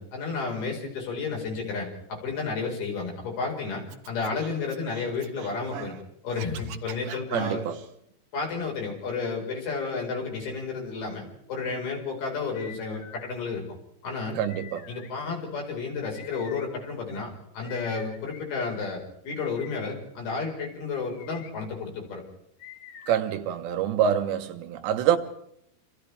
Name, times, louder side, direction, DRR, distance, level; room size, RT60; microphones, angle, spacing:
voice 1, 0.0-5.9 6.2-7.6 8.3-13.6 14.0-14.4 14.9-22.2, left 4 dB, 65° left, 6.7 m, -32 dB
Scratching (performance technique), 3.9-6.0 6.3-7.9, right 8 dB, 65° right, 2.4 m, -42 dB
voice 2, 7.3-7.8 14.4-14.9 23.1-25.2, right 9 dB, 85° right, 3.5 m, -26 dB
sound 1, 12.5-13.3 14.5-15.1 16.1-16.7 17.6-18.4 19.4-20.0 21.0-21.5 22.6-23.2, left 8 dB, 85° left, 4.1 m, -46 dB
28.5 x 26.5 x 3.5 m
omnidirectional pair, 4.9 m